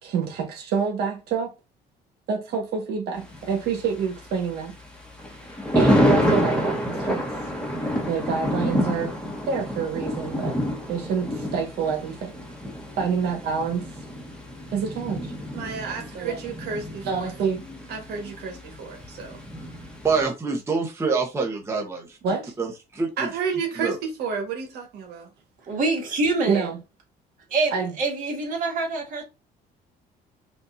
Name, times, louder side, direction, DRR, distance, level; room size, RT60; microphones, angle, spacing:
voice 1, 0.0-1.5 2.3-4.7 5.7-7.2 8.0-9.1 9.5-10.6 10.9-12.4 13.0-13.9 14.7-17.6 17.9-19.4 22.2-22.5 23.2-25.3 26.5-26.8 27.7-27.9, right 6 dB, 70° right, 1.3 m, -28 dB
Thunder, 3.2-20.3, equal, 5° left, 1.1 m, -28 dB
voice 2, 20.0-22.2 22.6-23.3 23.8-24.0, right 4 dB, 15° right, 0.9 m, -26 dB
voice 3, 25.7-26.7 27.5-29.2, right 3 dB, 50° right, 1.8 m, -25 dB
5.2 x 2.6 x 2.5 m
cardioid pair, 110°, 17 cm